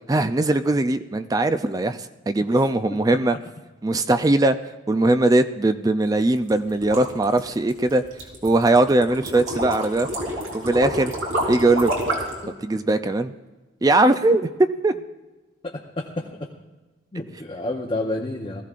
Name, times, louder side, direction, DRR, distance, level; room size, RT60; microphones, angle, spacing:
voice 1, 0.1-3.4 3.8-4.6 4.9-8.0 8.4-10.1 10.5-11.1 11.5-11.9 12.6-13.3 13.8-14.5 14.8-14.9, right 2 dB, 20° right, 9 dB, 0.3 m, -20 dB
sound 1, 6.4-12.4, right 1 dB, 90° right, 3.3 m, -28 dB
voice 2, 15.6-16.5 17.1-18.6, left 2 dB, 25° left, -1 dB, 0.8 m, -30 dB
19.5 x 14.5 x 2.5 m, 1.2 s
head